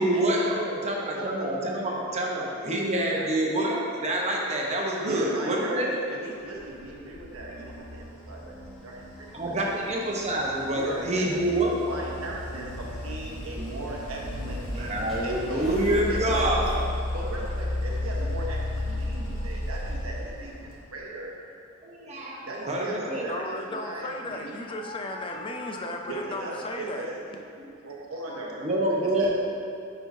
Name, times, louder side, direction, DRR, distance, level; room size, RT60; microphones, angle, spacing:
voice 1, 0.0-5.9 9.3-11.8 14.7-16.6 21.8-23.2 27.6-27.7 28.6-29.3, right 1 dB, 30° right, -2 dB, 0.9 m, -27 dB
voice 2, 1.1-2.0 2.2-3.3 3.7-3.8 5.0-9.4 9.7-9.8 10.7-11.3 11.9-15.7 16.1-16.8 17.1-21.3 22.5-24.5 26.1-27.1 27.8-29.3, right 2 dB, 90° right, -3 dB, 1.2 m, -38 dB
sound 1, 3.4-3.9 4.2-5.6 6.3-16.8, right 1 dB, ahead, 1.5 m, -42 dB
sound 2, 6.5-21.0, left 1 dB, 70° left, 1.1 m, -34 dB
voice 3, 23.1-27.1 28.3-28.4, left 2 dB, 25° left, 3 dB, 0.5 m, -35 dB
9.4 x 5.5 x 2.7 m, 2.5 s
head